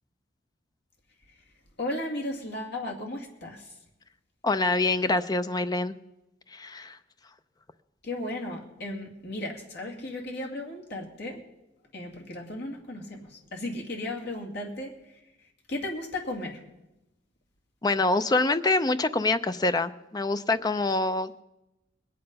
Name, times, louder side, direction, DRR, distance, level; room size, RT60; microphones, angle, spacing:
voice 1, 1.8-3.7 8.0-11.4 11.9-14.9 15.7-16.6, left 1 dB, 60° left, 0 dB, 2.3 m, -35 dB
voice 2, 4.4-6.0 6.5-7.0 17.8-21.4, left 2 dB, 20° left, 12 dB, 0.5 m, -25 dB
21.0 x 8.8 x 5.4 m, 0.95 s
head